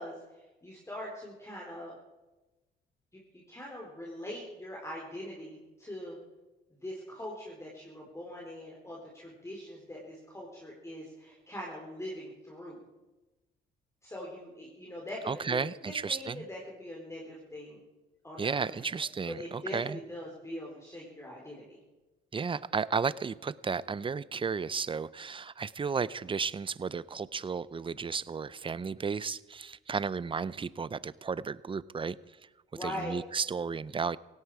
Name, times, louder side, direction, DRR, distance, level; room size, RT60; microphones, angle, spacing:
voice 1, 0.0-2.0 3.1-6.2 6.8-12.8 14.0-17.8 18.2-18.9 19.3-21.8 32.7-33.1, left 1 dB, 15° left, -3 dB, 4.0 m, -42 dB
voice 2, 15.3-16.4 18.4-20.0 22.3-32.2 32.8-34.2, right 5 dB, 25° right, 19 dB, 0.6 m, -33 dB
17.5 x 16.5 x 4.8 m, 1.1 s
cardioid pair, 90°, 20 cm